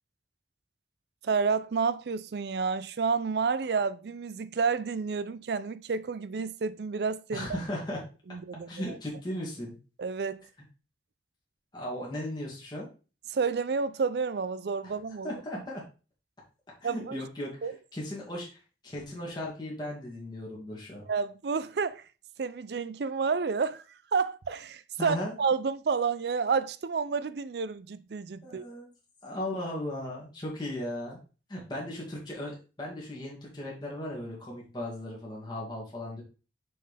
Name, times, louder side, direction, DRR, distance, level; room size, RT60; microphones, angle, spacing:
voice 1, 1.2-7.5 8.3-8.8 10.0-10.4 13.3-15.3 16.8-17.2 17.6-17.7 21.1-22.0 22.4-28.6, right 5 dB, 70° right, 0.4 m, -30 dB
voice 2, 7.3-8.0 8.7-9.8 11.7-12.9 14.8-15.0 15.2-15.8 16.8-21.0 25.0-25.3 28.4-28.9 29.2-31.2 31.5-36.2, left 1 dB, 25° left, 2.1 m, -37 dB
6.6 x 4.4 x 3.3 m
head